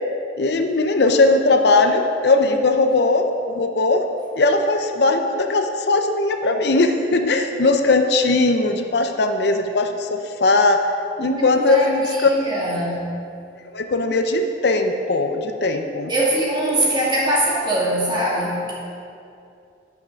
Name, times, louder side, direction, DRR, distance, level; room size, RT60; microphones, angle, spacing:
voice 1, 0.4-4.0 4.3-10.8 11.2-12.3 13.7-16.1, left 3 dB, 60° left, 6 dB, 0.6 m, -19 dB
voice 2, 11.2-13.0 16.1-18.7, right 1 dB, 25° right, -6 dB, 2.2 m, -22 dB
9.3 x 5.7 x 6.2 m, 2.6 s
head